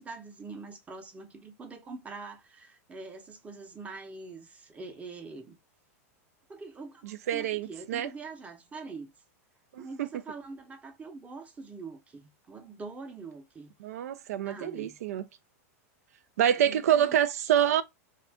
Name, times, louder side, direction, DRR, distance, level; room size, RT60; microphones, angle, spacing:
voice 1, 0.0-5.6 6.5-7.0 7.3-9.1 9.8-13.7 14.4-15.0 16.6-17.2, right 4 dB, 15° right, 0.7 m, -44 dB
voice 2, 7.0-8.1 9.7-10.1 13.8-15.2 16.4-17.8, right 10 dB, 80° right, 0.4 m, -27 dB
2.6 x 2.4 x 3.4 m
hypercardioid pair, 125°, 8 cm